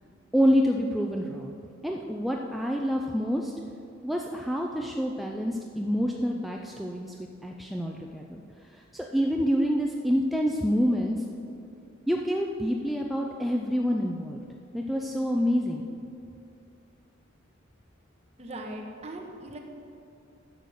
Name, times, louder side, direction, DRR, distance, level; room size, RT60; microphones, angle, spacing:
voice 1, 0.3-3.5 4.0-7.2 7.4-8.4 8.7-11.2 12.1-14.4 14.7-15.8, equal, ahead, 0 dB, 0.4 m, -27 dB
voice 2, 18.4-19.6, right 1 dB, 30° right, 1 dB, 1.2 m, -39 dB
11.0 x 6.8 x 6.3 m, 2.6 s
head